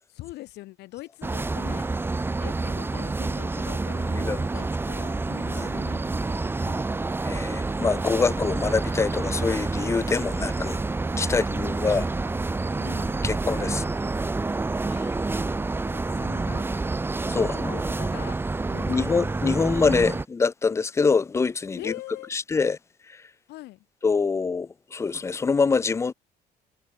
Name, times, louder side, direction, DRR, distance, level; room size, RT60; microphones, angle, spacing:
voice 1, 0.1-7.1 11.3-11.4 12.8-13.2 14.9-15.2 15.9-16.7 17.4-18.4 18.7-19.3 19.6-20.2 21.8-22.3 23.5-23.9, left 18 dB, 80° left, 1.9 m, -43 dB
sound 1, 1.2-20.2, right 3 dB, 15° right, 0.7 m, -28 dB
voice 2, 7.2-10.8 11.2-12.1 13.2-13.8 17.3-17.8 18.9-21.9 22.3-22.8 23.1-23.2 24.0-26.1, left 4 dB, 15° left, 0.3 m, -25 dB
cardioid pair, 110°, 17 cm